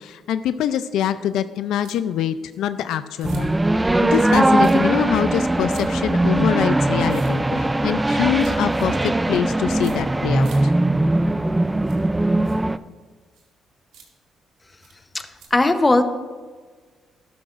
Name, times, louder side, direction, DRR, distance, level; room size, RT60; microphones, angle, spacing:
voice 1, 0.0-3.6 4.0-10.7, left 10 dB, 85° left, 12 dB, 0.4 m, -24 dB
sound 1, 1.8-2.0 2.5-2.6 3.2-3.4 4.1-4.3 4.5-4.7 5.7-5.9 7.1-7.3 8.3-8.9 9.8-9.9 10.4-10.6 11.8-12.0 12.4-12.6 13.3-13.5 13.9-14.1 14.8-14.9 15.4-15.5, right 6 dB, 85° right, 2.1 m, -47 dB
sound 2, 3.2-12.8, right 1 dB, 15° right, 0.3 m, -20 dB
voice 2, 15.5-16.0, left 2 dB, 20° left, 8 dB, 0.8 m, -17 dB
12.5 x 11.5 x 2.5 m, 1.4 s
cardioid pair, 90°, 0 cm